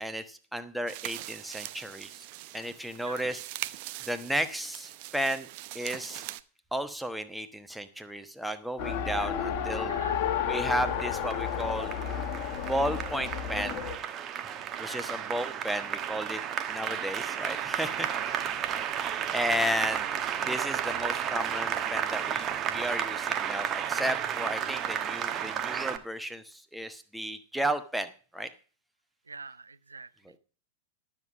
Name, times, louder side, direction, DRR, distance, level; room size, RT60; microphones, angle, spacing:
voice 1, 0.0-2.2 2.5-3.4 4.1-5.5 5.7-6.2 6.7-10.0 10.4-11.9 12.6-13.8 14.8-16.4 16.7-18.3 19.3-20.1 20.4-28.1 28.3-28.5 30.2-30.4, right 1 dB, ahead, 10 dB, 1.2 m, -33 dB
sound 1, 0.9-6.4, right 17 dB, 45° right, 0.7 m, -42 dB
voice 2, 3.0-3.3 8.1-8.2 9.8-10.3 14.9-15.2 18.0-19.0 29.3-30.1, right 4 dB, 80° right, 13 dB, 0.6 m, -45 dB
Race car auto racing, 8.8-14.0, left 8 dB, 40° left, 1.7 m, -32 dB
Applause, 10.7-26.0, right 9 dB, 30° right, 1.2 m, -33 dB
12.5 x 7.4 x 6.1 m, 0.37 s
figure-of-eight pair, 90°, 0 cm